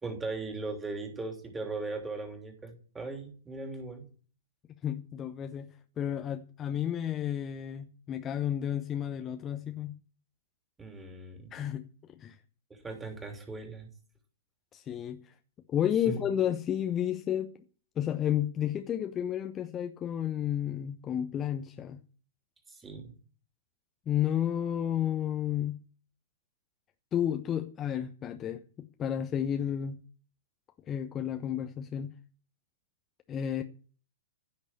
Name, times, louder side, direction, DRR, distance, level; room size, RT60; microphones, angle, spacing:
voice 1, 0.0-4.1 10.8-11.5 12.7-13.9 16.0-16.3 22.7-23.1, right 3 dB, 10° right, 3.2 m, -38 dB
voice 2, 4.8-10.0 11.5-11.8 12.2-12.4 14.7-15.3 15.7-17.6 18.0-22.0 24.1-25.8 27.1-30.0 30.9-32.1 33.3-33.6, left 10 dB, 20° left, 0.9 m, -32 dB
15.5 x 6.5 x 9.6 m
figure-of-eight pair, 110°, 0 cm